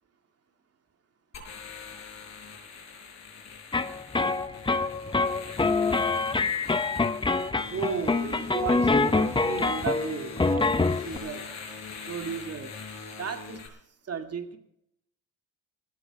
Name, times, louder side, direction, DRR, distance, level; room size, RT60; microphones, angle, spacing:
sound 1, 1.3-13.7, left 5 dB, 45° left, 5.3 m, -43 dB
sound 2, 3.7-11.2, left 3 dB, 15° left, 0.8 m, -25 dB
voice 1, 7.7-11.6 12.1-12.7 13.2-13.7 14.0-14.6, right 6 dB, 40° right, 6 dB, 2.3 m, -34 dB
18.0 x 14.0 x 4.9 m, 0.75 s
cardioid pair, 115°, 38 cm